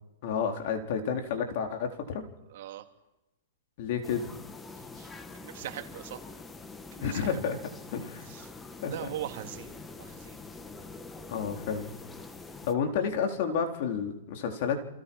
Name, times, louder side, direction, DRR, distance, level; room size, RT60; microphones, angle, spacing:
voice 1, 0.2-2.2 3.8-4.3 7.0-7.6 7.9-8.2 8.8-9.1 11.3-11.9 12.6-14.9, left 6 dB, 50° left, 4 dB, 4.2 m, -30 dB
voice 2, 2.5-2.8 5.0-5.1 5.4-6.2 7.0-7.4 8.3-8.5 8.8-10.4, right 13 dB, 60° right, 5 dB, 2.9 m, -40 dB
sound 1, 4.0-12.7, left 3 dB, 10° left, 1.6 m, -45 dB
29.5 x 27.0 x 5.7 m, 0.97 s
hypercardioid pair, 145°, 0 cm